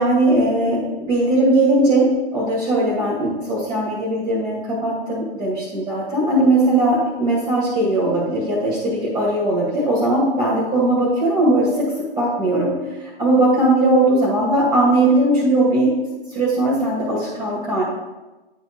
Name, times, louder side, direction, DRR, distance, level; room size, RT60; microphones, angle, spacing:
voice 1, 0.0-12.7 13.0-15.9 16.3-17.8, right 1 dB, 15° right, -7 dB, 2.0 m, -19 dB
10.5 x 4.4 x 3.0 m, 1.1 s
hypercardioid pair, 120°, 30 cm